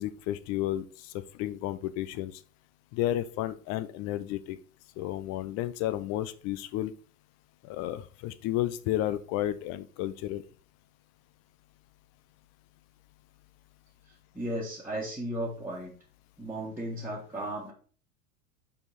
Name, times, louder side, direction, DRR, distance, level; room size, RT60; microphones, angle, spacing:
voice 1, 0.0-2.4 2.9-4.6 5.0-6.9 7.6-10.4, left 13 dB, 35° left, 13 dB, 0.5 m, -32 dB
voice 2, 14.1-15.9 16.4-17.7, right 1 dB, 5° right, -7 dB, 1.6 m, -35 dB
5.6 x 4.6 x 4.1 m, 0.41 s
hypercardioid pair, 95°, 45 cm